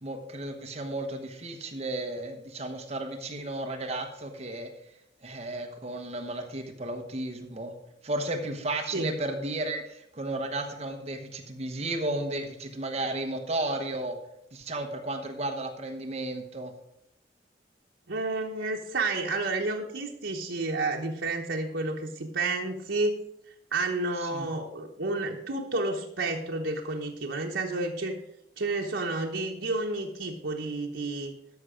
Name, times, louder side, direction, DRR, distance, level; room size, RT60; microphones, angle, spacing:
voice 1, 0.0-4.7 5.2-7.7 8.0-14.2 14.5-16.7 24.2-24.5, right 2 dB, 35° right, 4 dB, 1.1 m, -33 dB
voice 2, 18.1-23.2 23.7-28.2 28.6-31.3, right 2 dB, 85° right, -1 dB, 1.0 m, -30 dB
13.0 x 5.7 x 5.0 m, 0.78 s
head